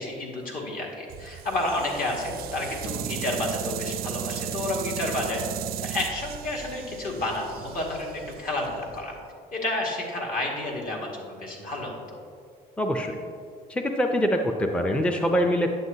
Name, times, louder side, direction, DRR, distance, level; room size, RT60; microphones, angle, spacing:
voice 1, 0.0-5.4 5.8-9.1 9.5-12.0, left 2 dB, 60° left, -2 dB, 2.0 m, -30 dB
sound 1, 1.1-9.2, right 11 dB, 65° right, 0.4 m, -35 dB
voice 2, 12.8-13.2 13.7-15.7, equal, 5° left, 4 dB, 0.5 m, -24 dB
9.4 x 7.8 x 2.8 m, 2.2 s
cardioid pair, 110°, 17 cm